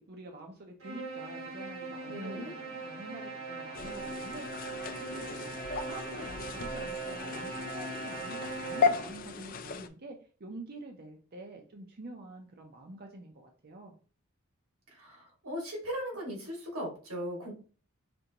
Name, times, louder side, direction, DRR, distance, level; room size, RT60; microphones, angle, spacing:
voice 1, 0.0-4.7 5.0-5.4 5.9-13.9, right 2 dB, 45° right, 2 dB, 0.6 m, -47 dB
sound 1, 0.8-9.3, right 3 dB, 70° right, 1.5 m, -40 dB
voice 2, 2.0-2.5 14.9-17.5, equal, 85° right, 0 dB, 2.1 m, -38 dB
sound 2, 3.7-9.9, left 5 dB, 40° left, 0.4 m, -35 dB
5.2 x 3.4 x 2.9 m, 0.40 s
head